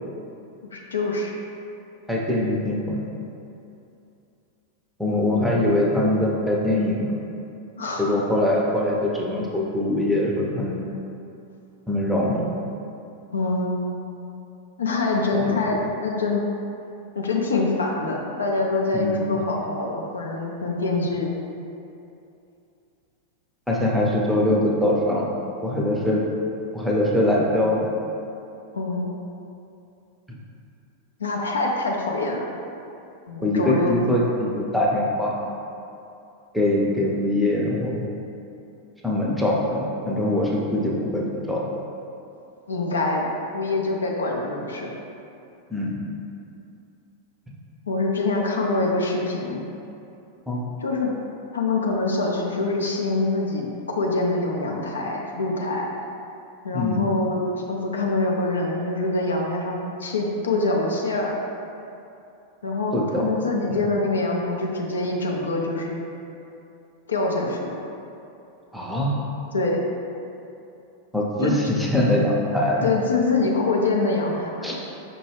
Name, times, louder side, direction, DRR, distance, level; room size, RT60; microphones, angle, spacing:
voice 1, 0.7-1.3 5.3-5.6 7.8-8.1 13.3-13.9 14.8-16.4 17.1-21.3 28.7-29.1 31.2-32.4 33.3-33.9 42.7-44.9 47.9-49.6 50.8-51.1 51.5-55.9 56.6-57.4 57.7-61.3 62.6-66.0 67.1-67.8 69.5-69.8 71.4-71.5 72.8-74.7, left 3 dB, 70° left, -1 dB, 0.4 m, -25 dB
voice 2, 2.1-3.0 5.0-7.1 8.0-10.8 11.9-12.5 15.3-15.8 18.9-19.4 23.7-25.3 25.6-26.2 26.7-27.9 33.4-35.3 36.5-38.0 39.0-41.6 45.7-46.0 50.5-50.7 56.7-57.1 62.9-63.3 63.7-63.8 68.7-69.1 71.1-72.9 74.6-74.7, left 1 dB, ahead, -4 dB, 0.6 m, -23 dB
5.3 x 2.2 x 3.3 m, 2.7 s
figure-of-eight pair, 90°, 0 cm